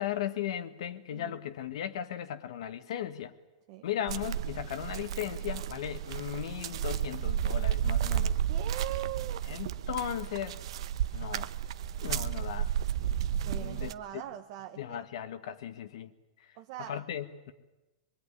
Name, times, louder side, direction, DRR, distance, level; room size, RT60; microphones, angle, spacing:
voice 1, 0.0-3.3 3.8-8.4 9.5-10.6 11.1-11.5 12.0-12.7 13.5-14.2 14.8-16.1 16.9-17.5, left 10 dB, 65° left, 10 dB, 1.4 m, -36 dB
voice 2, 1.1-1.4 3.7-3.9 8.5-9.4 13.3-15.0 16.6-17.0, right 13 dB, 35° right, 6 dB, 1.0 m, -41 dB
sound 1, 4.1-13.9, right 10 dB, 60° right, 0.9 m, -32 dB
23.0 x 22.5 x 9.8 m, 1.1 s
supercardioid pair, 175°, 3 cm